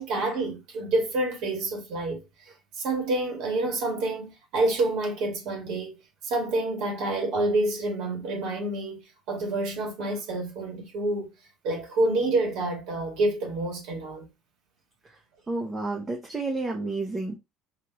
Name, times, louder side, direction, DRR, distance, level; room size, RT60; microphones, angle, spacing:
voice 1, 0.0-6.0 6.2-9.0 9.3-11.3 11.6-14.3, right 2 dB, 60° right, 2.1 m, -28 dB
voice 2, 15.5-17.3, right 3 dB, 15° right, 0.8 m, -30 dB
4.7 x 3.0 x 3.0 m
cardioid pair, 160°, 0 cm